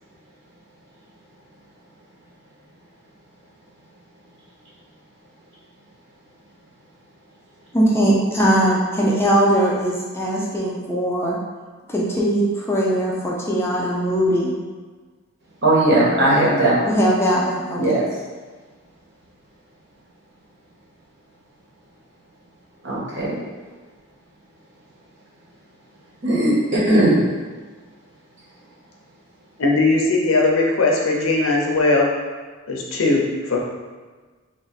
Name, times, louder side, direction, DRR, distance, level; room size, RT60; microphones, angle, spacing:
voice 1, 7.7-11.4 11.9-14.5 16.9-17.8, right 1 dB, 10° left, -4 dB, 0.5 m, -20 dB
voice 2, 15.6-17.0 17.7-18.0 22.8-23.4 26.2-27.2, right 1 dB, 55° right, -7 dB, 1.2 m, -18 dB
voice 3, 29.6-32.1 32.7-33.6, left 2 dB, 65° left, -1 dB, 0.6 m, -19 dB
3.1 x 2.5 x 4.0 m, 1.4 s
head